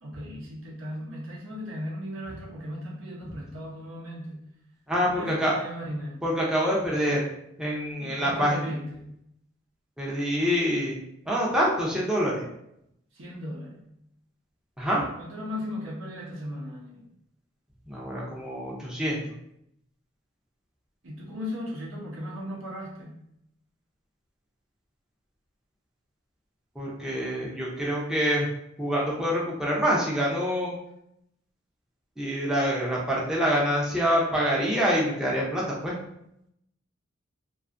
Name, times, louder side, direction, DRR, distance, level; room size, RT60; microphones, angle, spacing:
voice 1, 0.0-4.4 5.0-6.2 8.0-9.0 13.1-13.9 15.2-17.0 21.0-23.1, equal, 80° right, -3 dB, 0.8 m, -36 dB
voice 2, 4.9-5.6 6.2-7.2 7.6-8.6 10.0-11.0 11.3-12.4 14.8-15.0 17.9-19.2 26.8-28.5 28.8-30.8 32.2-36.0, equal, 5° right, -5 dB, 0.4 m, -26 dB
2.5 x 2.3 x 2.4 m, 0.77 s
head